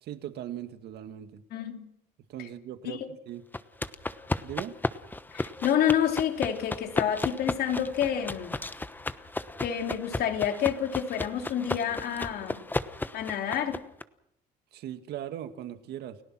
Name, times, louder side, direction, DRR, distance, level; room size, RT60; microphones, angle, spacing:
voice 1, 0.0-1.4 2.3-3.4 4.4-4.8 14.7-16.2, right 11 dB, 75° right, 2.0 m, -39 dB
voice 2, 1.5-1.9 2.4-2.5 2.8-3.1 5.3-8.6 9.6-12.6 13.1-13.8, left 9 dB, 65° left, 3.1 m, -28 dB
sound 1, 3.5-14.0, left 2 dB, 10° left, 1.1 m, -34 dB
30.0 x 17.0 x 6.2 m
cardioid pair, 110°, 17 cm